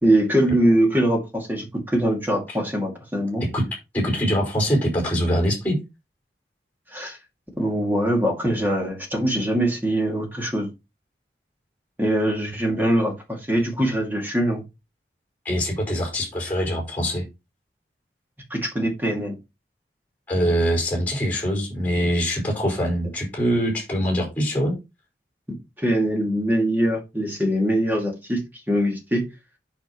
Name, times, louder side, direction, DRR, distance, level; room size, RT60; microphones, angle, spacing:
voice 1, 0.0-3.4 6.9-7.2 7.6-10.7 12.0-14.6 18.5-19.4 25.8-28.4 28.7-29.2, right 1 dB, 10° right, 1 dB, 2.3 m, -22 dB
voice 2, 3.9-5.8 15.4-17.2 20.3-24.7, equal, 10° left, 0 dB, 4.8 m, -23 dB
8.8 x 5.9 x 3.0 m, 0.25 s
head